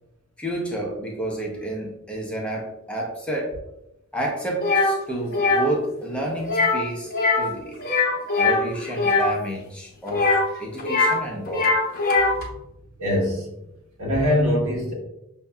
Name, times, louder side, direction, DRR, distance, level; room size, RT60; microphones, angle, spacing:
voice 1, 0.4-3.6 4.1-7.8 8.4-10.2 10.6-11.7, right 1 dB, 5° left, -2 dB, 0.6 m, -30 dB
sound 1, 4.6-4.9 5.3-5.7 6.4-6.8 7.1-7.5 7.8-9.3 10.1-11.2 11.5-12.4, left 3 dB, 40° left, 0.8 m, -21 dB
voice 2, 13.0-13.5 14.0-14.9, left 1 dB, 75° right, -3 dB, 1.5 m, -22 dB
5.7 x 2.7 x 2.2 m, 0.88 s
head